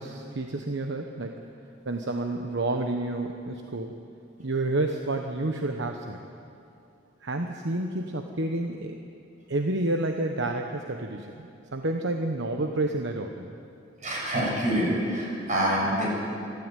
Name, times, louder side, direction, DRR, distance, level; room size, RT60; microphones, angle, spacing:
voice 1, 0.0-1.4 1.8-3.9 4.4-6.2 7.2-9.0 9.5-13.5, right 2 dB, 65° right, 4 dB, 1.1 m, -29 dB
voice 2, 14.0-16.1, equal, 40° right, -3 dB, 7.3 m, -26 dB
25.5 x 13.0 x 9.2 m, 2.6 s
head